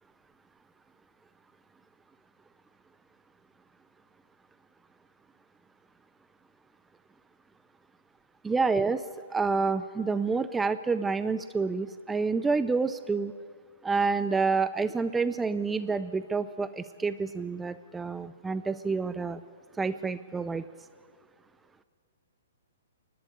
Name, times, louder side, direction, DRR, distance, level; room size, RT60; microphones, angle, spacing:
voice 1, 8.4-9.0 9.3-13.3 13.8-19.4 19.8-20.6, right 4 dB, 10° right, 13 dB, 0.4 m, -28 dB
29.0 x 11.5 x 8.3 m, 2.2 s
hypercardioid pair, 135°, 0 cm